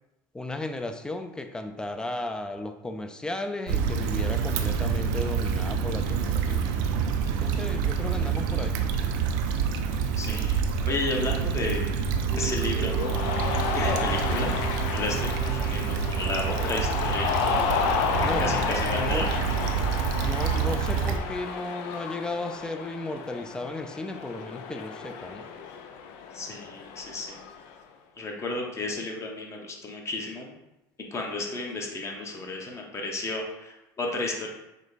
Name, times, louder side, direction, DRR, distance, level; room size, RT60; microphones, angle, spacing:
voice 1, 0.3-6.6 7.4-8.8 18.2-19.3 20.2-25.5, left 2 dB, 10° left, 7 dB, 0.4 m, -34 dB
Stream / Traffic noise roadway noise / Trickle dribble, 3.7-21.2, right 6 dB, 80° right, 0.5 m, -27 dB
voice 2, 10.2-10.6 10.8-11.9 12.3-13.0 13.7-14.5 14.9-17.4 18.4-19.4 26.3-27.4 28.2-30.5 31.1-34.5, left 2 dB, 30° left, 0 dB, 1.0 m, -32 dB
Mallet percussion, 12.3-21.1, right 6 dB, 10° right, 0.9 m, -42 dB
Cheering, 12.9-27.7, left 6 dB, 70° left, 0.5 m, -31 dB
5.0 x 2.2 x 4.0 m, 0.96 s
supercardioid pair, 95°, 10 cm